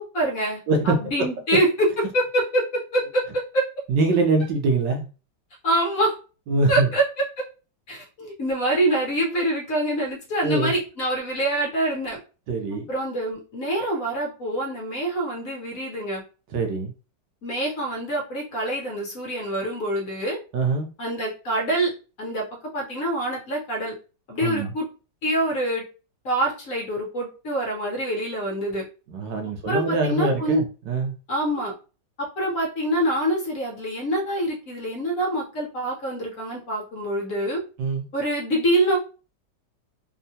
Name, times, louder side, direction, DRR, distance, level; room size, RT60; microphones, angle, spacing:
voice 1, 0.0-3.7 5.6-6.1 6.7-7.0 7.4-7.5 7.9-12.2 12.9-16.2 17.4-20.4 21.0-21.9 22.2-22.5 22.7-23.9 24.3-24.9 25.2-25.8 26.2-28.8 29.7-30.6 31.3-31.7 32.2-37.6 38.1-39.0, right 1 dB, 55° left, -1 dB, 1.1 m, -25 dB
voice 2, 0.7-1.0 3.9-5.1 6.5-6.9 10.4-10.7 12.5-12.9 16.5-16.9 20.5-20.9 24.4-24.7 29.1-31.1 37.8-38.0, right 3 dB, 75° right, 3 dB, 1.4 m, -23 dB
3.6 x 2.2 x 2.7 m, 0.33 s
omnidirectional pair, 2.0 m